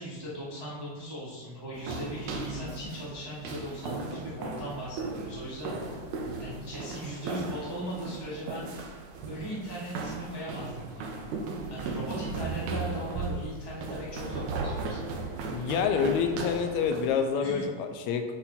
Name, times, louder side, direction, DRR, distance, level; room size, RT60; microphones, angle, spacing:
voice 1, 0.0-5.7 6.4-8.7 9.2-11.1 11.7-15.1 17.4-17.7, equal, 15° right, -7 dB, 0.9 m, -38 dB
sound 1, 1.7-17.1, right 3 dB, 85° right, 2.2 m, -36 dB
voice 2, 15.5-18.2, left 6 dB, 80° left, 6 dB, 1.9 m, -27 dB
10.0 x 3.9 x 4.3 m, 1.4 s
omnidirectional pair, 3.3 m